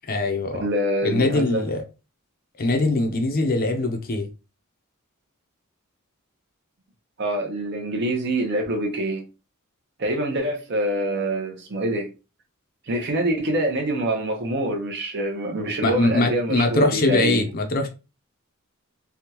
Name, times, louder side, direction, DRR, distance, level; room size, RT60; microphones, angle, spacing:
voice 1, 0.1-0.7 1.0-1.8 2.6-4.3 15.8-17.9, left 2 dB, 45° left, 0.6 m, -22 dB
voice 2, 0.6-1.6 7.2-9.2 10.0-12.1 12.9-17.4, right 1 dB, 55° right, 0.8 m, -25 dB
3.4 x 2.3 x 2.8 m
head